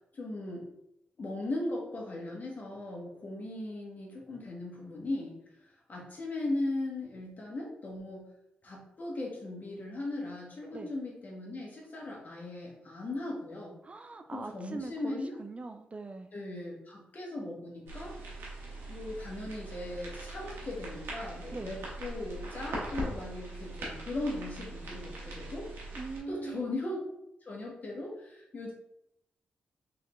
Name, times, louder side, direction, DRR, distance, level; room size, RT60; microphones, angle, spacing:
voice 1, 0.1-0.7 1.2-5.4 5.9-8.3 8.6-13.7 14.3-15.4 16.3-18.1 18.9-25.7 26.3-27.0 27.4-28.7, left 2 dB, 50° left, -2 dB, 1.4 m, -38 dB
voice 2, 13.8-16.3 21.5-21.7 26.0-26.7, right 3 dB, 35° right, 7 dB, 0.4 m, -41 dB
sound 1, 17.9-26.2, right 1 dB, 85° right, 1.2 m, -41 dB
3.8 x 3.3 x 3.1 m, 0.81 s
supercardioid pair, 55°, 4 cm